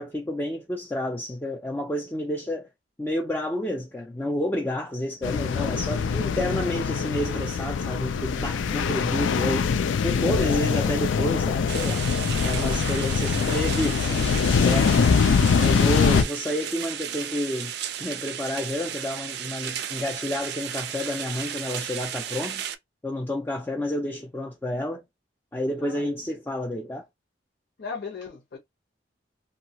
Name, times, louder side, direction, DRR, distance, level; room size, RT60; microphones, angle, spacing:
voice 1, 0.0-2.7 3.0-9.7 10.0-12.0 12.4-14.3 14.6-14.9 15.4-17.7 18.0-22.6 23.0-25.0 25.5-27.1, left 1 dB, 10° left, 0.4 m, -30 dB
sound 1, 5.2-16.2, left 6 dB, 75° left, 0.4 m, -23 dB
sound 2, 11.7-22.8, right 9 dB, 55° right, 0.3 m, -34 dB
voice 2, 27.8-28.6, left 5 dB, 55° left, 0.9 m, -38 dB
2.8 x 2.3 x 2.8 m
head